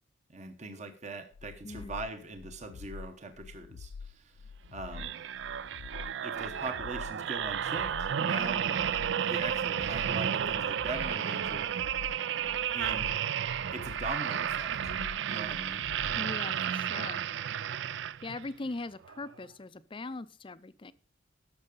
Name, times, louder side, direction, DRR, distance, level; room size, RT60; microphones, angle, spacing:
voice 1, 0.3-4.3 4.7-5.2 6.2-8.8 9.2-11.7 12.7-13.1 13.7-14.9 15.3-15.8, right 3 dB, 35° right, 6 dB, 1.0 m, -41 dB
sound 1, 1.3-16.3, left 5 dB, 85° left, 0.4 m, -46 dB
sound 2, 4.9-18.5 19.0-19.2, right 9 dB, 60° right, 0.4 m, -32 dB
voice 2, 16.1-17.2 18.2-20.9, left 3 dB, 25° left, 15 dB, 0.4 m, -40 dB
12.0 x 6.7 x 5.3 m, 0.43 s
head